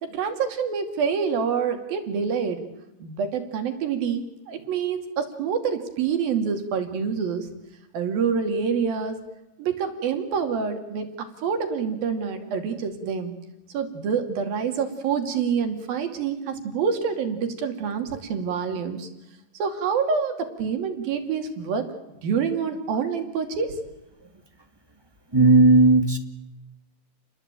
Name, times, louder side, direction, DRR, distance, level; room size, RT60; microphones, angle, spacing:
voice 1, 0.0-2.6 3.0-7.5 7.9-9.2 9.6-13.4 13.7-19.1 19.5-21.9 22.2-23.8, right 6 dB, 85° right, 6 dB, 4.4 m, -27 dB
voice 2, 25.3-26.2, right 2 dB, 10° right, 6 dB, 1.2 m, -15 dB
29.5 x 21.0 x 9.0 m, 0.91 s
omnidirectional pair, 4.0 m